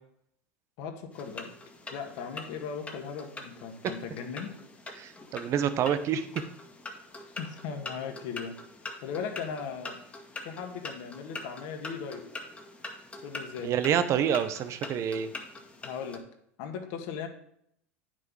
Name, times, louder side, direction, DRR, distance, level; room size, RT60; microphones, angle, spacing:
voice 1, 0.8-1.5 1.9-4.5 7.4-8.6 9.0-10.0 10.4-12.2 13.2-13.7 15.8-16.2 16.6-17.3, left 6 dB, 60° left, 4 dB, 1.8 m, -38 dB
sound 1, 1.1-16.2, left 2 dB, 15° left, 1.8 m, -44 dB
voice 2, 4.9-6.3 13.6-15.3, right 8 dB, 45° right, 12 dB, 1.0 m, -27 dB
9.5 x 6.2 x 4.8 m, 0.70 s
hypercardioid pair, 95°, 7 cm